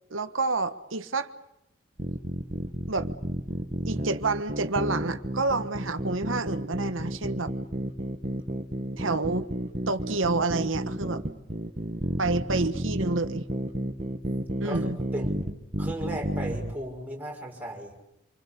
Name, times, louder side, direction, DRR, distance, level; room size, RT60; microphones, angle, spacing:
voice 1, 0.1-1.3 2.9-3.1 3.9-7.5 9.0-9.5 9.9-11.2 12.2-13.5 14.6-15.0, right 3 dB, 90° right, 10 dB, 1.4 m, -28 dB
sound 1, 2.0-16.7, right 1 dB, 35° right, 1.7 m, -31 dB
voice 2, 12.2-12.7 14.6-14.8 15.1-15.3 15.8-17.9, right 1 dB, 10° right, -1 dB, 6.1 m, -36 dB
27.5 x 25.0 x 8.5 m, 0.84 s
head